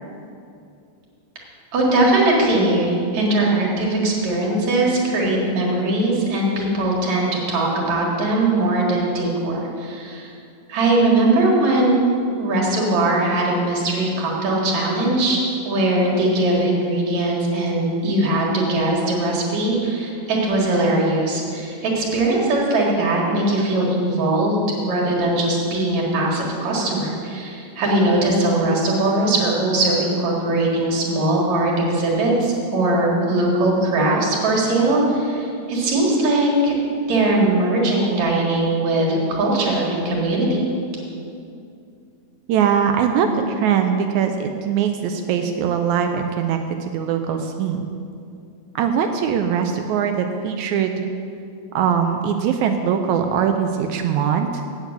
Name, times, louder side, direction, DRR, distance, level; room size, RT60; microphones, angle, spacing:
voice 1, 1.7-10.3 10.7-12.0 12.4-36.7 37.1-40.7, right 2 dB, 60° right, -3 dB, 3.1 m, -20 dB
voice 2, 42.5-47.9 48.8-51.1 51.7-54.6, right 7 dB, 85° right, 6 dB, 1.7 m, -21 dB
8.3 x 8.0 x 8.2 m, 2.5 s
omnidirectional pair, 3.9 m